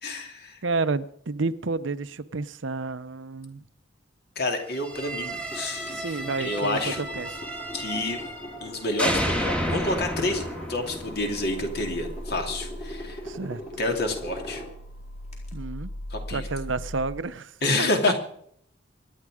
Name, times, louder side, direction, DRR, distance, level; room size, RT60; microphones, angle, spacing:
voice 1, 0.0-0.6 4.4-6.0 6.4-7.0 7.7-8.2 8.6-13.2 13.8-14.6 16.1-16.5 17.6-18.1, left 2 dB, 55° left, 2.7 m, -28 dB
voice 2, 0.6-3.6 5.9-7.3 13.2-13.6 15.5-15.9 16.3-17.5 17.8-18.1, right 3 dB, 70° right, 0.7 m, -30 dB
sound 1, 4.8-8.7 9.0-12.0, equal, 5° left, 1.6 m, -32 dB
sound 2, 4.9-17.2, equal, 85° left, 4.2 m, -41 dB
sound 3, 5.2-15.5, left 1 dB, 35° left, 4.3 m, -41 dB
24.5 x 9.7 x 4.9 m
head